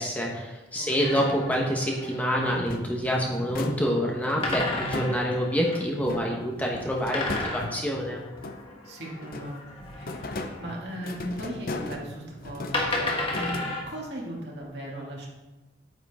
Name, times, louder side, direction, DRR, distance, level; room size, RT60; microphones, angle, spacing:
voice 1, 0.0-8.2, equal, 10° left, -2 dB, 1.1 m, -27 dB
voice 2, 0.8-1.2 8.8-9.6 9.9-15.3, right 1 dB, 65° right, -3 dB, 2.4 m, -37 dB
sound 1, 1.0-2.7 4.4-5.9 7.1-10.7 11.9-12.0 12.7-13.8, left 2 dB, 30° left, 1.5 m, -33 dB
sound 2, 2.6-5.6 6.0-8.9 9.2-14.2, left 2 dB, 50° left, 0.7 m, -38 dB
9.4 x 9.3 x 3.6 m, 1.1 s
head